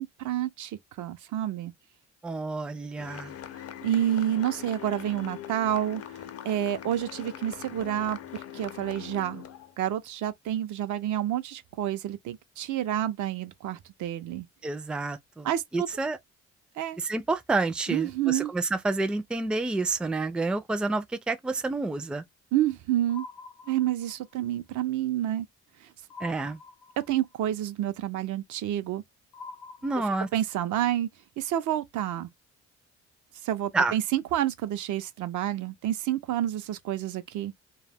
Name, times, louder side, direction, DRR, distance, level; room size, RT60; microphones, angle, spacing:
voice 1, 0.0-1.7 3.8-6.0 6.4-9.5 9.8-14.5 15.4-15.9 16.8-17.0 17.9-18.5 22.5-23.3 23.7-25.5 25.8-25.9 27.0-29.0 30.3-31.1 31.4-32.3 33.4-37.5, right 12 dB, 75° right, 0.6 m, -29 dB
voice 2, 2.2-3.3 14.6-15.5 15.7-16.2 17.0-22.2 26.2-26.6 29.8-30.3 33.7-33.9, right 3 dB, 5° right, 0.3 m, -29 dB
sound 1, 3.0-9.7, left 10 dB, 50° left, 0.5 m, -42 dB
sound 2, 23.1-24.3 26.1-27.3 29.3-30.6, left 3 dB, 85° left, 0.7 m, -46 dB
2.3 x 2.1 x 3.3 m
cardioid pair, 90°, 30 cm